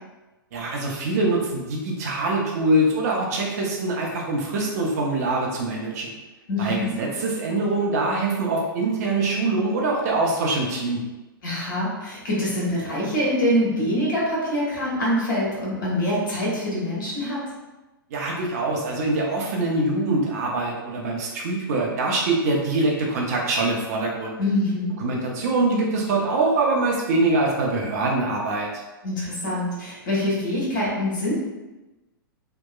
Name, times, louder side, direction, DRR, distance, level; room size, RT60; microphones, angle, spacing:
voice 1, 0.5-6.1 6.6-11.0 18.1-24.4 25.0-28.7, right 2 dB, 45° right, -2 dB, 0.5 m, -24 dB
voice 2, 6.5-6.9 11.4-17.4 24.4-24.9 29.0-31.3, left 1 dB, 60° left, -6 dB, 1.1 m, -24 dB
2.8 x 2.1 x 2.3 m, 1.1 s
figure-of-eight pair, 105°, 12 cm